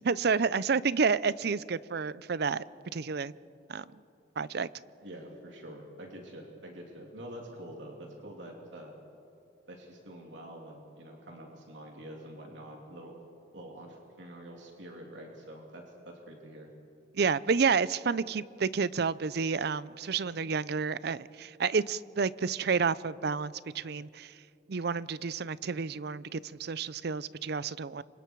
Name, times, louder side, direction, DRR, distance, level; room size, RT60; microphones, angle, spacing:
voice 1, 0.0-2.6 2.9-3.3 3.7-3.8 4.4-4.7 17.1-24.4 24.7-28.0, right 5 dB, 60° right, 0.5 m, -30 dB
voice 2, 5.0-8.9 9.7-13.1 13.5-16.7, right 1 dB, 90° right, 3.1 m, -46 dB
28.5 x 25.0 x 4.7 m
head